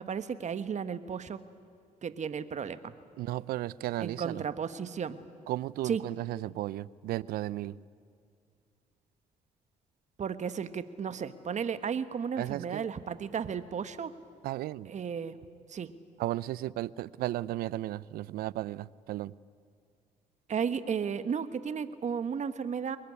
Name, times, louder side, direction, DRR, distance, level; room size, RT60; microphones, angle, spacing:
voice 1, 0.0-1.4 2.0-2.9 4.0-5.2 5.8-6.0 10.2-14.1 14.9-15.4 15.7-15.9 20.5-23.0, right 7 dB, 50° right, 1.3 m, -34 dB
voice 2, 3.2-4.4 5.5-7.8 12.4-12.9 14.4-14.9 16.2-19.3, right 15 dB, 75° right, 0.6 m, -34 dB
23.0 x 20.5 x 9.9 m
supercardioid pair, 60°, 16 cm